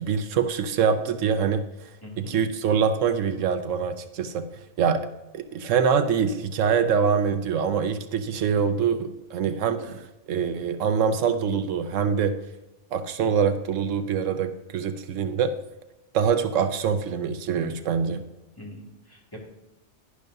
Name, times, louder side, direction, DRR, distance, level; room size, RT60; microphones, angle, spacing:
voice 1, 0.0-1.6 2.2-4.4 4.8-5.0 5.3-12.3 12.9-15.5 16.1-18.2, right 6 dB, 80° right, 9 dB, 1.0 m, -24 dB
voice 2, 2.0-2.4 18.6-19.4, left 1 dB, 15° left, -3 dB, 2.1 m, -43 dB
11.0 x 10.5 x 2.6 m, 0.99 s
omnidirectional pair, 1.3 m